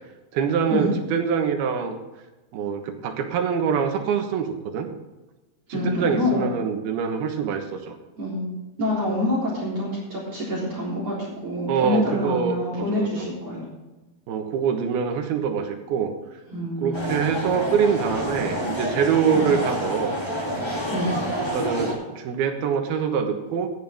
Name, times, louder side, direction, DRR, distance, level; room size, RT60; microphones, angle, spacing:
voice 1, 0.3-2.0 2.5-4.9 5.8-8.0 11.7-13.3 14.3-16.1 16.8-20.2 21.5-23.7, right 6 dB, 75° right, 5 dB, 3.2 m, -24 dB
voice 2, 5.7-6.4 8.2-8.5 8.8-13.7 16.5-17.2 19.3-19.6 20.9-21.1, left 1 dB, 40° right, -5 dB, 4.7 m, -26 dB
sound 1, 16.9-21.9, equal, 10° left, 2.3 m, -28 dB
15.0 x 10.5 x 3.6 m, 1.1 s
omnidirectional pair, 4.6 m